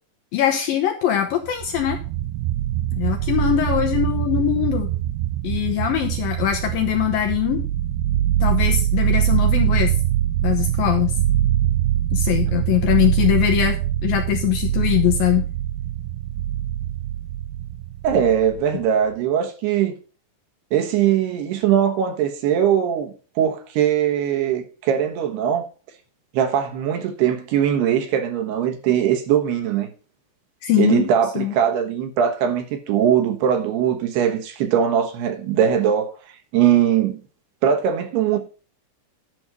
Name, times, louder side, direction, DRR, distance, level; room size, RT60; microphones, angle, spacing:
voice 1, 0.3-2.0 2.9-4.9 5.4-7.7 8.4-9.9 10.4-11.2 12.1-13.8 14.0-15.5 30.6-31.1 31.4-31.5, left 11 dB, 70° left, 2.3 m, -21 dB
sound 1, 1.4-18.8, right 13 dB, 90° right, 2.1 m, -23 dB
voice 2, 18.0-20.0 20.7-25.6 26.3-29.9 30.8-36.1 36.5-37.2 37.6-38.4, right 9 dB, 75° right, 3.0 m, -20 dB
11.0 x 6.2 x 5.2 m
omnidirectional pair, 5.1 m